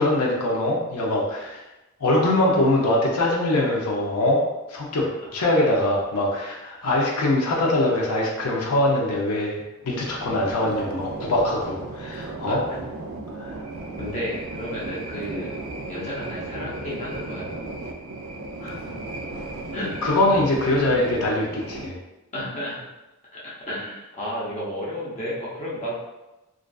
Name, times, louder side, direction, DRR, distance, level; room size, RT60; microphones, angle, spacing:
voice 1, 0.0-1.6 2.0-4.4 4.7-12.6 13.4-13.6 20.0-22.0, left 1 dB, 85° left, -2 dB, 0.5 m, -23 dB
sound 1, 9.8-21.9, right 2 dB, 60° right, 0.3 m, -35 dB
voice 2, 12.5-12.9 14.0-15.6 15.9-17.5 18.6-18.9 19.7-19.9 20.3-20.4 22.3-22.8 23.3-25.9, equal, 30° left, -7 dB, 0.6 m, -32 dB
2.5 x 2.3 x 2.3 m, 1.0 s
head